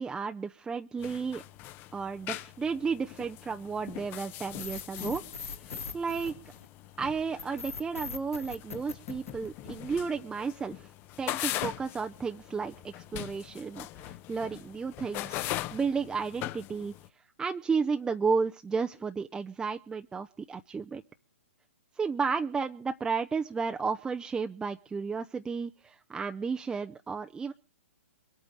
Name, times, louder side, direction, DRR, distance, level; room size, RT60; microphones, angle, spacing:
voice 1, 0.0-1.4 1.9-5.2 5.6-6.4 7.0-10.9 11.2-16.9 17.4-21.0 22.0-27.5, right 5 dB, 10° right, 6 dB, 0.8 m, -33 dB
sound 1, 1.0-17.1, left 14 dB, 30° left, 0.9 m, -41 dB
sound 2, 4.6-6.9 7.4-9.8, left 5 dB, 80° left, 1.9 m, -40 dB
23.5 x 9.0 x 6.4 m, 0.38 s
hypercardioid pair, 125°, 7 cm